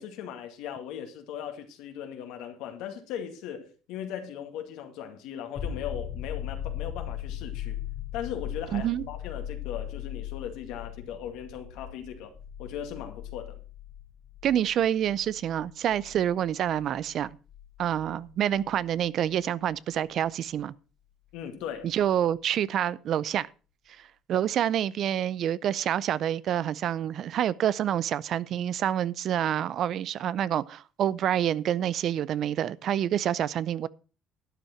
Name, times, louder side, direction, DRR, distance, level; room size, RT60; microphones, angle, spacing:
voice 1, 0.0-7.8 8.1-13.6 21.3-21.9, left 9 dB, 80° left, 2.1 m, -38 dB
sound 1, 5.6-19.1 21.8-21.9, left 10 dB, 45° left, 1.8 m, -39 dB
voice 2, 8.7-9.1 14.4-17.3 17.8-20.7 21.8-23.5 24.3-33.9, right 10 dB, 60° right, 0.5 m, -27 dB
12.0 x 9.0 x 4.4 m
supercardioid pair, 90°, 0 cm